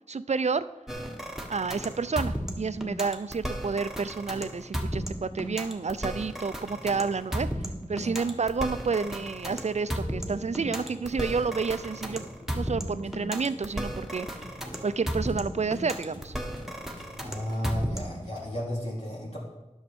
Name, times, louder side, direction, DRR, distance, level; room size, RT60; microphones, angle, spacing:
voice 1, 0.1-0.6 1.5-7.5 7.9-12.2 12.5-14.4 14.8-16.3, right 5 dB, 55° right, 15 dB, 0.4 m, -30 dB
sound 1, 0.9-18.3, equal, 5° right, 1.3 m, -34 dB
sound 2, 1.0-18.6, left 1 dB, 35° left, 1.6 m, -52 dB
sound 3, 9.4-18.0, left 1 dB, 90° left, 3.4 m, -50 dB
voice 2, 17.2-19.4, equal, 55° left, -6 dB, 2.6 m, -33 dB
10.0 x 6.3 x 5.2 m, 1.0 s
wide cardioid pair, 50°, 13 cm